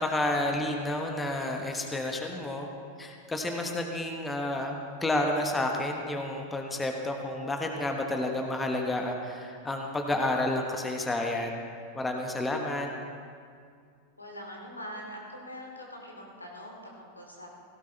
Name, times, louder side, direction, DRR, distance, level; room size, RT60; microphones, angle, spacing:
voice 1, 0.0-2.7 3.0-11.7 11.9-12.9, left 1 dB, 10° left, 2 dB, 1.3 m, -30 dB
voice 2, 14.2-17.5, equal, 85° left, -1 dB, 2.6 m, -43 dB
17.0 x 16.5 x 3.4 m, 2.2 s
figure-of-eight pair, 90°, 0 cm